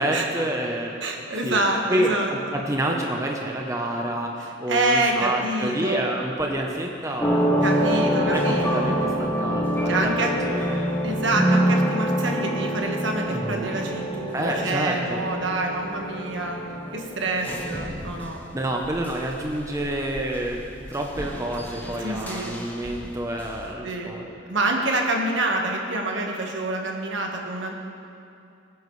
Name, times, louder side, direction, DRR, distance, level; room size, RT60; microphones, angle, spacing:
voice 1, 0.0-0.9 1.4-1.6 1.9-2.4 2.7-7.5 7.9-10.9 13.3-13.7 14.3-15.2 18.5-20.6 20.9-24.3, right 1 dB, 15° right, 0 dB, 0.8 m, -28 dB
voice 2, 1.0-2.6 4.4-6.1 7.6-8.9 9.8-10.4 11.0-16.6 16.9-18.4 22.0-22.6 23.8-24.2 24.5-27.7, right 2 dB, 65° right, 1 dB, 1.5 m, -27 dB
sound 1, 7.2-18.5 18.8-23.6, equal, 10° left, 1.1 m, -26 dB
21.5 x 9.3 x 3.2 m, 2.6 s
head